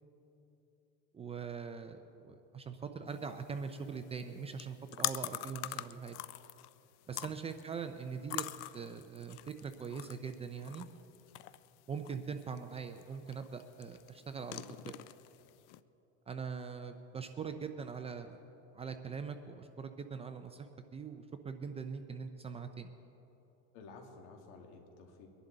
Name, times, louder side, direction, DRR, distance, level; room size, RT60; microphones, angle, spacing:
voice 1, 1.1-6.2 7.1-8.5 8.7-10.9 11.9-14.9 16.3-18.4 18.7-20.7 20.9-22.9, right 6 dB, 20° right, 8 dB, 0.5 m, -42 dB
sound 1, 3.1-15.8, left 16 dB, 85° left, 0.5 m, -45 dB
voice 2, 23.7-25.3, left 4 dB, 65° left, 3 dB, 2.2 m, -53 dB
23.0 x 11.0 x 4.0 m, 2.9 s
cardioid pair, 140°, 34 cm